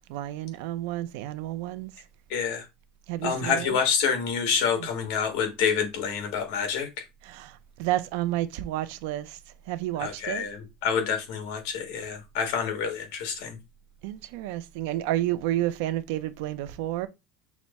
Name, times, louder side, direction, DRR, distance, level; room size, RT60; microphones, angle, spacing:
voice 1, 0.1-1.9 3.1-3.8 7.2-9.4 9.7-10.4 14.0-17.1, right 14 dB, 70° right, 0.5 m, -30 dB
voice 2, 2.3-2.6 3.2-7.0 10.0-13.6, left 6 dB, 60° left, 1.4 m, -27 dB
5.9 x 2.1 x 4.0 m
cardioid pair, 160°, 0 cm